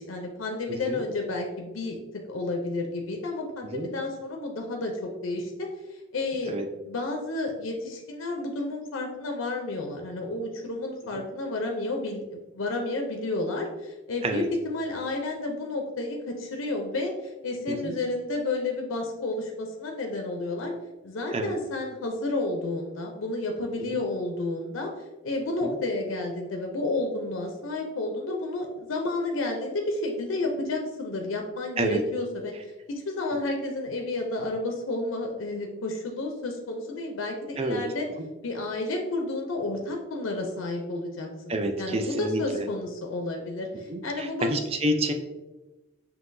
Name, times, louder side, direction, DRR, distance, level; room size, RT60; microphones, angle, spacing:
voice 1, 0.0-2.0 2.3-5.7 6.1-6.5 6.8-20.7 21.0-24.9 25.2-32.5 32.9-38.1 38.4-41.3 41.8-44.5, left 2 dB, 80° left, 2 dB, 0.5 m, -31 dB
voice 2, 0.7-1.0 3.7-3.9 6.5-6.6 14.2-14.5 17.7-17.9 21.3-21.5 25.6-25.8 31.8-32.0 37.6-37.8 41.5-42.7 43.9-45.1, right 1 dB, 30° right, 5 dB, 0.4 m, -28 dB
5.6 x 2.8 x 2.6 m, 1.1 s
head